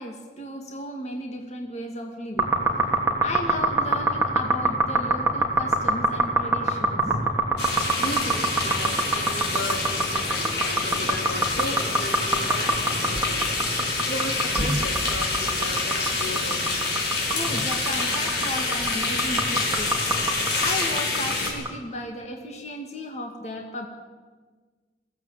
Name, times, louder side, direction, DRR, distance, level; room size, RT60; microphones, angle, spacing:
voice 1, 0.0-2.5 3.2-7.1 17.3-19.9 20.5-23.9, left 1 dB, 40° left, 2 dB, 2.2 m, -34 dB
sound 1, 2.4-21.7, right 2 dB, 15° right, 3.0 m, -24 dB
sound 2, 7.6-21.5, left 3 dB, 65° left, 6.6 m, -27 dB
voice 2, 8.0-16.9, left 2 dB, 85° left, 3 dB, 3.7 m, -35 dB
22.0 x 15.5 x 9.0 m, 1.4 s
head